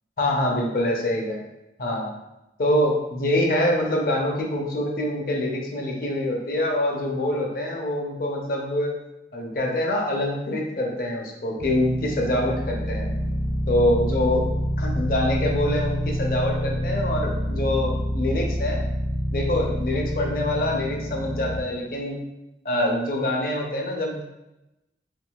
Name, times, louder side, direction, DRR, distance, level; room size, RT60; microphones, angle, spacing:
voice 1, 0.2-1.4 1.8-2.1 2.6-8.9 9.3-13.1 13.7-14.5 14.8-18.8 19.3-22.2 22.6-24.2, left 1 dB, 55° left, 0 dB, 0.5 m, -25 dB
sound 1, 11.6-21.6, equal, 85° left, 0.8 m, -27 dB
3.6 x 2.7 x 2.3 m, 0.94 s
head